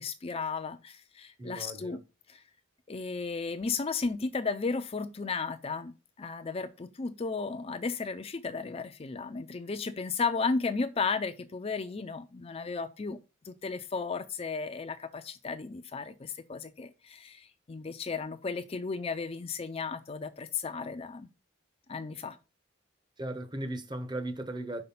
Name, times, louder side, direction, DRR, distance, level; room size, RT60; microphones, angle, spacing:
voice 1, 0.0-2.0 2.3-2.4 2.9-13.2 13.4-21.3 21.9-22.4, left 4 dB, 30° left, 0.4 m, -34 dB
voice 2, 1.4-2.0 23.2-24.8, right 1 dB, 20° right, 0.8 m, -37 dB
5.4 x 4.2 x 5.7 m
head